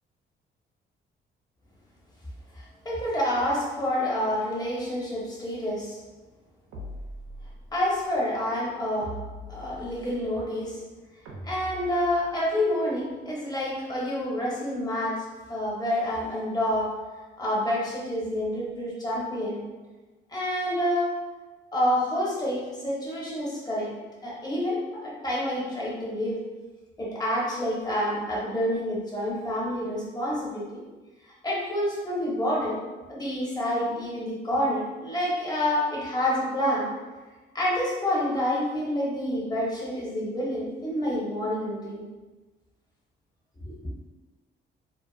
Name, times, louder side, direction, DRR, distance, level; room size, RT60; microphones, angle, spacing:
voice 1, 2.5-6.0 7.7-9.1 9.5-10.8 11.4-15.2 15.5-16.9 17.4-19.6 20.3-21.1 21.7-23.9 24.2-26.4 27.0-30.8 31.2-32.8 33.1-36.9 37.5-42.1 43.6-43.7, left 1 dB, 20° left, -5 dB, 0.9 m, -28 dB
sound 1, 6.7-7.8 9.0-10.3 11.2-12.5, right 1 dB, 85° right, 0.6 m, -41 dB
2.5 x 2.4 x 2.4 m, 1.2 s
cardioid pair, 90°, 20 cm